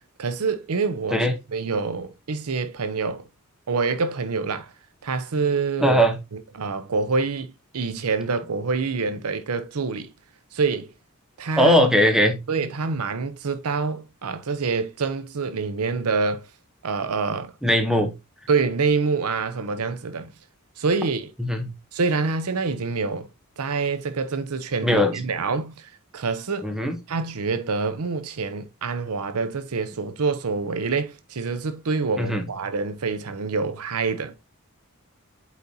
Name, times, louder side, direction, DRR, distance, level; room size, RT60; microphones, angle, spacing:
voice 1, 0.2-1.2 1.5-3.2 3.7-4.7 5.0-6.0 6.5-7.5 7.7-10.1 10.5-10.9 11.4-11.9 12.5-16.5 16.8-17.5 18.5-20.3 20.8-21.3 21.9-23.3 23.6-26.7 27.1-34.4, right 4 dB, 85° right, 0.7 m, -26 dB
voice 2, 5.8-6.2 11.6-12.4 17.6-18.1 21.4-21.7 24.8-25.1 26.6-27.0 32.2-32.5, equal, ahead, 0.9 m, -19 dB
8.5 x 4.1 x 2.7 m
head